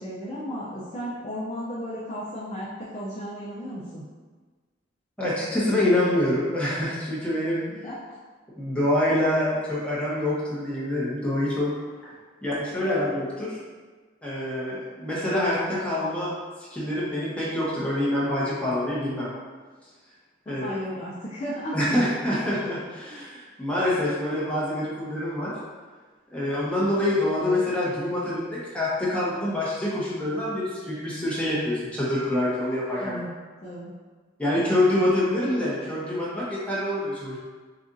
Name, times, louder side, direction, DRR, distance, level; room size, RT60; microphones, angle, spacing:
voice 1, 0.0-4.0 7.7-7.9 20.5-21.9 33.0-33.3 33.6-33.9, equal, 35° left, -7 dB, 0.6 m, -34 dB
voice 2, 5.2-7.6 8.6-11.7 12.0-12.1 12.4-13.6 14.2-16.3 16.7-19.3 20.5-20.7 21.7-25.5 26.3-33.2 34.4-37.4, left 1 dB, 5° left, -8 dB, 1.0 m, -26 dB
6.7 x 2.5 x 2.6 m, 1.4 s
head